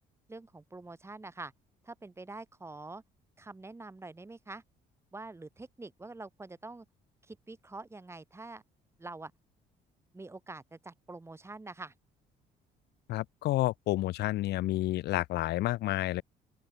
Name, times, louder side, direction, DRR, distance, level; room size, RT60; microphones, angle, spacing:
voice 1, 0.3-1.5 1.8-3.0 3.4-4.6 5.1-6.9 7.2-8.6 9.0-9.3 10.1-11.9, right 3 dB, 15° right, 6.8 m, -45 dB
voice 2, 13.1-16.2, left 16 dB, 75° left, 1.6 m, -30 dB
open air
cardioid pair, 110°, 17 cm